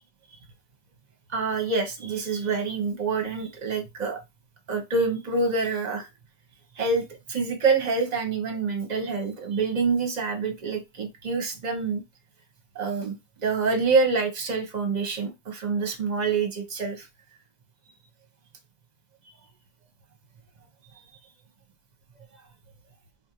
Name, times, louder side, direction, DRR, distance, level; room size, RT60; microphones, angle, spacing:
voice 1, 1.3-4.2 4.7-6.1 6.8-12.0 12.7-13.1 13.4-17.1, right 4 dB, 40° right, 0.9 m, -26 dB
4.0 x 2.5 x 2.9 m
omnidirectional pair, 1.2 m